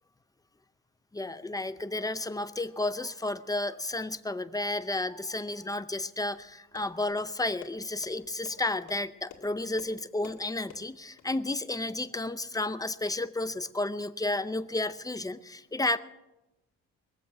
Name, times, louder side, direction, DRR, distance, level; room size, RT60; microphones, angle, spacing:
voice 1, 1.1-16.0, left 2 dB, 10° left, 13 dB, 0.6 m, -32 dB
sound 1, 6.3-11.3, left 7 dB, 70° left, 2.0 m, -52 dB
22.0 x 7.6 x 6.1 m, 0.99 s
cardioid pair, 90°, 30 cm